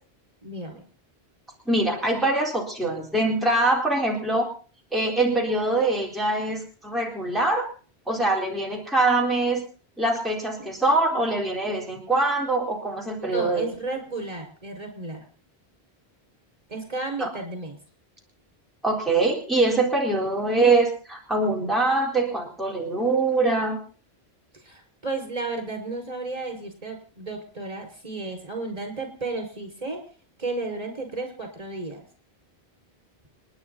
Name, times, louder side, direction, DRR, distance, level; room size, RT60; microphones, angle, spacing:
voice 1, 0.4-0.8 10.6-10.7 11.1-11.2 13.2-15.2 16.7-17.8 24.6-30.0 30.4-32.0, right 3 dB, 35° right, 2 dB, 5.6 m, -33 dB
voice 2, 1.7-4.5 4.9-7.6 8.1-9.6 10.0-13.7 17.2-17.3 18.8-23.8, right 2 dB, ahead, -3 dB, 4.0 m, -23 dB
30.0 x 10.5 x 4.1 m, 0.40 s
omnidirectional pair, 1.1 m